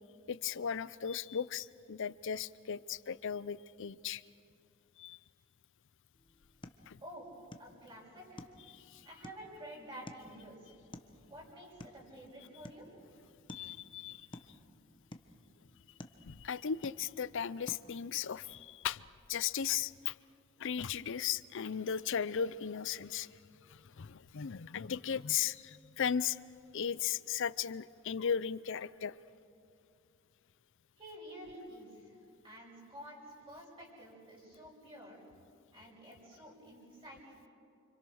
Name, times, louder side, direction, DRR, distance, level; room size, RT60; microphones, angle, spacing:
voice 1, 0.3-4.2 5.0-5.2 6.9-7.0 8.7-9.0 13.5-14.3 16.3-19.0 19.3-20.1 20.6-23.3 23.7-26.4 26.7-29.2, left 8 dB, 60° left, 18 dB, 0.6 m, -36 dB
sound 1, 6.1-18.1, left 1 dB, 25° left, 1.1 m, -55 dB
voice 2, 7.6-8.5 9.0-10.7 11.3-12.8 31.0-32.1 32.4-33.2 33.5-35.2 35.7-37.2, equal, 25° right, -4 dB, 6.6 m, -50 dB
29.0 x 26.0 x 6.3 m, 2.5 s
head